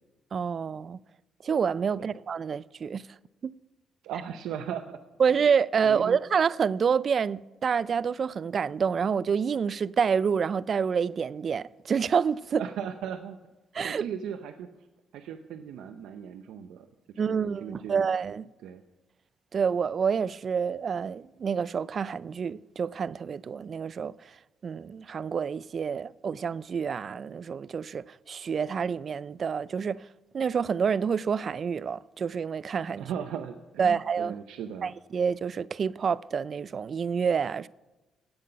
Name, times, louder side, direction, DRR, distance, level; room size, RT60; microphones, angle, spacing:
voice 1, 0.3-1.0 1.4-3.1 3.4-3.5 5.2-12.6 13.7-14.0 17.2-18.4 19.5-24.4 24.6-30.0 30.3-33.1 33.8-34.4 34.8-37.7, right 6 dB, 50° right, 0.3 m, -28 dB
voice 2, 4.0-5.0 5.8-6.2 12.6-13.4 13.8-14.7 15.1-16.9 17.2-18.0 18.6-18.8 33.0-34.9, right 8 dB, 85° right, 0.7 m, -37 dB
16.5 x 7.9 x 5.7 m
cardioid pair, 90°, 0 cm